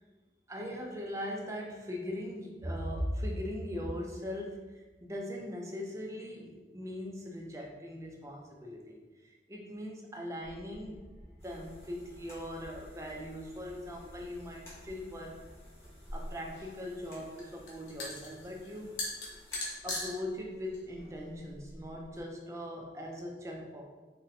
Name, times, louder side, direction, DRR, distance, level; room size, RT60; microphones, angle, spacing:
voice 1, 0.5-11.0 11.3-15.4 16.1-19.1 19.8-23.8, equal, 15° right, 0 dB, 0.4 m, -40 dB
sound 1, 10.4-16.0, equal, 45° left, 0.7 m, -54 dB
sound 2, 11.4-19.8, left 1 dB, 15° left, 0.8 m, -59 dB
sound 3, 16.0-22.2, left 2 dB, 85° left, 0.8 m, -41 dB
3.9 x 2.1 x 2.6 m, 1.2 s
head